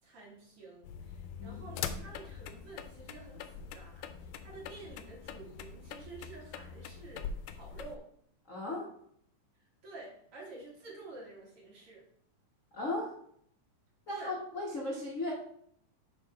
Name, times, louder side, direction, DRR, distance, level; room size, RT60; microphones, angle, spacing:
voice 1, 0.0-8.1 9.8-12.0 14.1-14.3, right 3 dB, 45° right, -5 dB, 3.1 m, -50 dB
sound 1, 0.8-8.0, left 7 dB, 90° left, 2.2 m, -43 dB
voice 2, 8.5-8.9 12.7-13.1 14.1-15.3, left 2 dB, 55° left, -3 dB, 0.8 m, -36 dB
8.2 x 3.8 x 4.8 m, 0.67 s
omnidirectional pair, 3.6 m